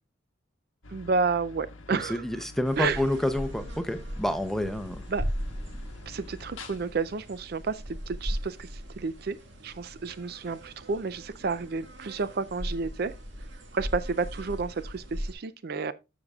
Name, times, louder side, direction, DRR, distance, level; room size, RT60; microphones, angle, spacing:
sound 1, 0.8-13.1, left 2 dB, 90° left, 1.1 m, -49 dB
voice 1, 0.9-2.2 2.8-3.0 5.1-5.2 6.0-9.4 9.6-13.1 13.7-15.9, right 4 dB, 50° right, 0.4 m, -31 dB
voice 2, 1.9-5.0, left 1 dB, ahead, 0.6 m, -29 dB
sound 2, 2.7-15.3, equal, 70° right, 1.7 m, -38 dB
12.0 x 6.6 x 2.3 m
head